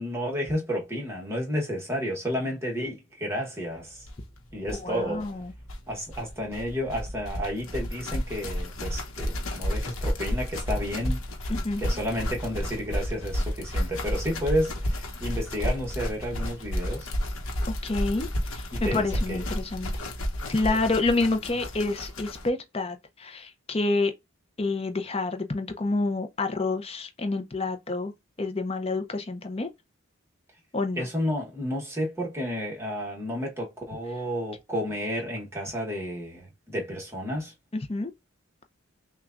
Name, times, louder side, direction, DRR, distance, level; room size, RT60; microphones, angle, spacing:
voice 1, 0.0-4.1 4.5-5.3 5.9-11.2 11.8-17.1 18.7-19.4 20.7-20.8 31.0-37.5, equal, 15° right, 1.2 m, -31 dB
sound 1, 4.1-4.2 4.4-4.5 4.6-22.5, equal, 85° left, 1.0 m, -31 dB
voice 2, 4.7-5.5 11.5-11.8 17.8-19.9 20.5-24.1 24.6-28.1 28.4-29.7 30.7-31.1 37.7-38.1, left 3 dB, 30° left, 0.6 m, -28 dB
6.0 x 2.3 x 2.5 m
head